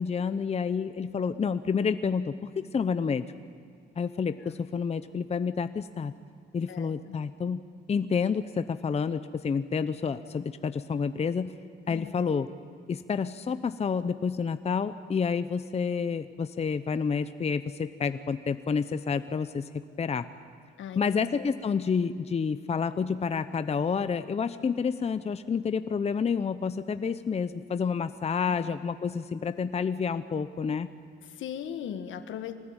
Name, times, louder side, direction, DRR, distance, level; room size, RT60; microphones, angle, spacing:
voice 1, 0.0-3.2 4.0-6.1 6.5-11.5 11.9-12.5 12.9-19.6 20.0-20.3 21.0-30.9, left 6 dB, 30° left, 11 dB, 0.8 m, -29 dB
voice 2, 11.9-12.2 20.8-21.5 28.5-28.6 31.2-32.6, left 9 dB, 75° left, 9 dB, 1.6 m, -39 dB
24.5 x 19.0 x 9.0 m, 2.1 s
cardioid pair, 90°, 20 cm